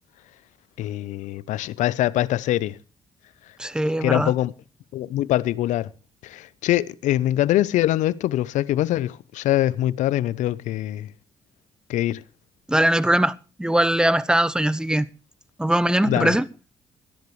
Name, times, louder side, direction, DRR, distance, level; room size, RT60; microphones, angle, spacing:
voice 1, 0.8-2.8 4.0-4.5 4.9-5.9 6.2-11.1 11.9-12.2 16.1-16.3, left 14 dB, 75° left, 0.7 m, -23 dB
voice 2, 3.6-4.3 12.7-15.1 15.6-16.5, right 1 dB, 5° right, 1.1 m, -21 dB
25.0 x 10.5 x 3.2 m
hypercardioid pair, 50°, 13 cm